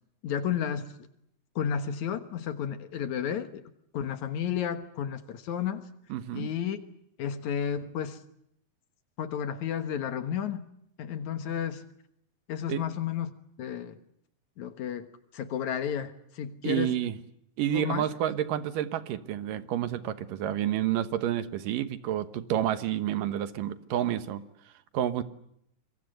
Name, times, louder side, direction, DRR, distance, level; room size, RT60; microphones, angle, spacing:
voice 1, 0.2-1.1 1.6-3.6 3.9-5.9 6.3-6.8 7.2-8.2 9.2-10.6 11.0-11.8 12.5-13.3 13.6-14.0 14.6-15.1 15.3-17.0 17.7-18.1, left 8 dB, 65° left, 10 dB, 2.5 m, -32 dB
voice 2, 6.1-6.5 12.7-12.8 16.6-17.1 17.6-24.4 24.9-25.2, right 11 dB, 80° right, 12 dB, 2.8 m, -29 dB
26.0 x 23.0 x 7.9 m, 0.75 s
omnidirectional pair, 3.9 m